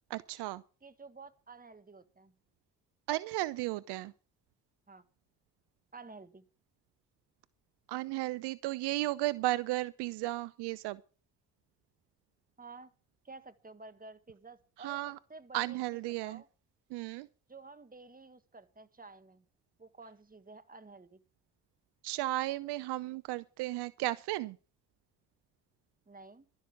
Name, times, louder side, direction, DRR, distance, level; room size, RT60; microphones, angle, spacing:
voice 1, 0.1-0.6 3.1-4.1 7.9-11.0 14.8-15.2 15.5-16.4 16.9-17.3 22.0-24.6, right 17 dB, 70° right, 0.6 m, -34 dB
voice 2, 0.8-2.3 4.9-5.1 5.9-6.5 12.6-12.9 13.2-16.5 17.5-19.5 19.8-21.2 26.1-26.5, right 3 dB, 20° right, 1.7 m, -52 dB
12.0 x 12.0 x 5.9 m
hypercardioid pair, 45°, 42 cm